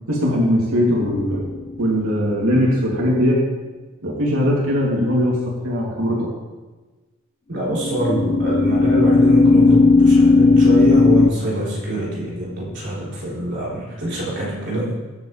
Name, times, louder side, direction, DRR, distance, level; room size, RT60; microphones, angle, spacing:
voice 1, 0.1-1.4 1.8-3.4 4.0-5.4 5.6-6.3, equal, 85° right, -4 dB, 2.9 m, -19 dB
sound 1, 1.0-1.7 7.7-11.3, left 3 dB, 30° left, 0.3 m, -15 dB
voice 2, 7.5-15.0, right 1 dB, 55° right, -7 dB, 4.0 m, -24 dB
22.0 x 7.6 x 3.4 m, 1.2 s
head